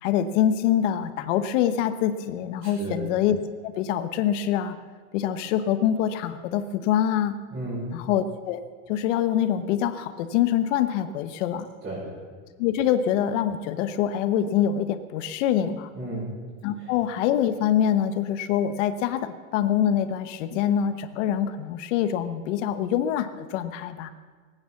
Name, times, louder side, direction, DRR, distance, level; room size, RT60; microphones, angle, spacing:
voice 1, 0.0-3.4 3.6-4.8 5.1-7.3 7.9-8.6 8.9-11.7 12.6-15.9 16.6-24.1, left 10 dB, 60° left, 10 dB, 1.1 m, -25 dB
voice 2, 2.6-3.0 7.5-7.9 11.8-12.1 15.9-16.3 16.8-16.9, right 2 dB, 20° right, -9 dB, 6.1 m, -33 dB
20.0 x 9.2 x 7.2 m, 1.5 s
supercardioid pair, 165°, 41 cm